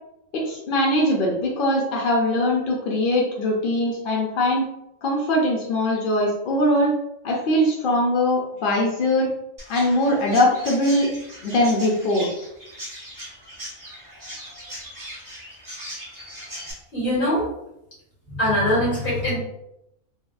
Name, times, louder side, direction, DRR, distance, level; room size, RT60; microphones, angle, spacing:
voice 1, 0.3-4.7 5.0-6.9 7.2-9.3 9.7-11.1 11.4-12.3, left 1 dB, 65° left, -2 dB, 0.5 m, -21 dB
Chirp tweet, 9.6-16.7, equal, 15° right, 1.0 m, -39 dB
voice 2, 16.9-17.4 18.4-19.4, left 1 dB, 40° left, -8 dB, 1.6 m, -22 dB
3.3 x 2.4 x 2.2 m, 0.83 s
omnidirectional pair, 1.4 m